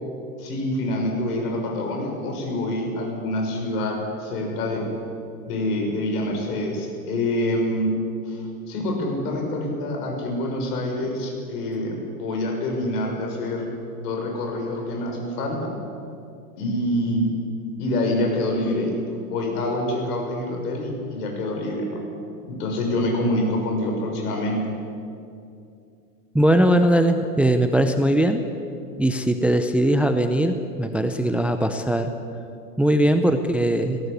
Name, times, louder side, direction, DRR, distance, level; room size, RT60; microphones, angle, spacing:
voice 1, 0.4-4.9 5.5-8.0 8.3-13.7 14.0-15.7 16.6-17.3 17.8-22.0 22.5-24.6, left 1 dB, 70° left, 1 dB, 6.7 m, -26 dB
voice 2, 26.3-28.4 29.0-32.1 32.8-34.0, right 1 dB, 5° right, 7 dB, 0.6 m, -20 dB
19.5 x 17.5 x 8.3 m, 2.6 s
hypercardioid pair, 115°, 49 cm